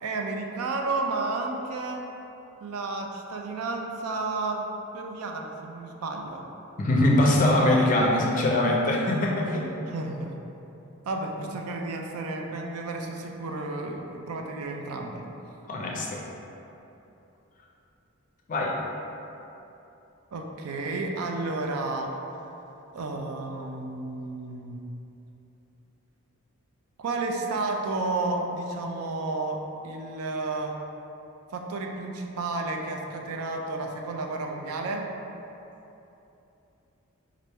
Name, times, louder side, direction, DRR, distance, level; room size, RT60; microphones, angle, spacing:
voice 1, 0.0-2.0 2.6-4.7 4.9-6.5 9.9-10.4 11.1-15.2 20.3-22.1 22.9-24.8 27.0-29.6 29.8-30.8 31.5-35.1, right 3 dB, 80° right, 2 dB, 0.4 m, -32 dB
voice 2, 6.8-9.7 15.7-16.2 18.5-18.7, left 1 dB, 35° left, -2 dB, 0.4 m, -22 dB
3.3 x 2.5 x 4.2 m, 3.0 s
head